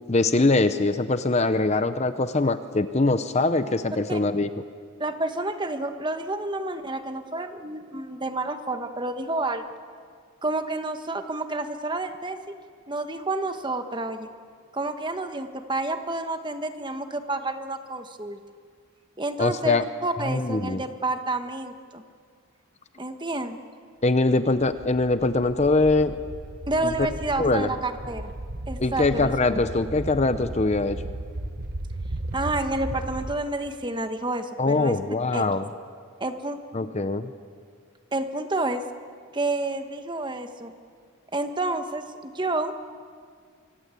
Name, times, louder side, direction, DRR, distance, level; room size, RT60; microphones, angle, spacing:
voice 1, 0.1-4.5 19.4-19.8 20.2-20.8 24.0-26.2 26.8-27.1 27.4-27.7 28.8-31.0 34.6-35.7 36.7-37.3, left 2 dB, 30° left, 11 dB, 0.7 m, -23 dB
voice 2, 5.0-9.6 10.4-12.5 12.9-14.3 14.7-18.4 19.2-22.0 23.0-23.6 26.7-28.3 28.7-29.3 32.3-34.9 35.3-35.4 36.2-36.6 38.1-38.8 39.3-40.7 41.3-42.7, right 2 dB, 20° right, 7 dB, 1.3 m, -29 dB
sound 1, 24.7-33.4, right 1 dB, 45° right, 1.1 m, -36 dB
25.0 x 24.0 x 8.4 m, 2.1 s
head